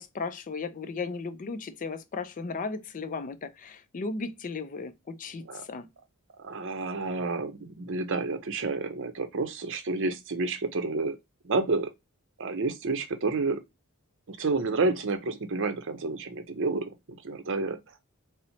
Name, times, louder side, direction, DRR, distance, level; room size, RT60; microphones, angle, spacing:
voice 1, 0.0-5.9, left 4 dB, 35° left, 0.4 m, -36 dB
voice 2, 6.4-11.2 11.4-11.9 12.4-13.6 14.3-16.9 17.2-17.8, right 3 dB, 60° right, 0.6 m, -29 dB
4.3 x 2.0 x 2.6 m
head